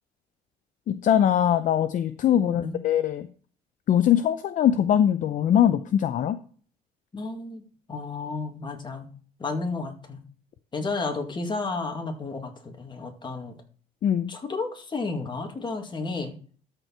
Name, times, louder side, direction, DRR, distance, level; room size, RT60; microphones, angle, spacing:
voice 1, 0.9-3.3 3.9-6.4 14.0-14.3, left 10 dB, 50° left, 11 dB, 0.6 m, -22 dB
voice 2, 2.4-2.8 7.1-9.1 9.4-10.2 10.7-13.5 14.3-16.3, left 3 dB, 25° left, 4 dB, 2.1 m, -32 dB
13.0 x 4.5 x 4.5 m, 0.43 s
cardioid pair, 110°, 17 cm